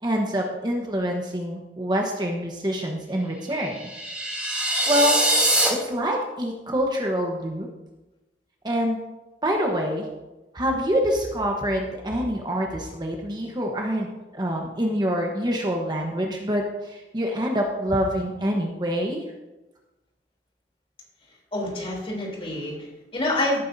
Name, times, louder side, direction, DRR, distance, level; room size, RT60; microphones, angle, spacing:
voice 1, 0.0-3.9 4.9-7.7 8.6-9.0 9.4-10.1 10.5-14.1 14.3-19.2, equal, 25° right, 1 dB, 1.2 m, -26 dB
sound 1, 3.7-5.7, right 1 dB, 5° right, 2.8 m, -23 dB
voice 2, 21.5-23.6, left 1 dB, 35° left, -2 dB, 3.4 m, -27 dB
16.5 x 9.3 x 2.8 m, 1.1 s
head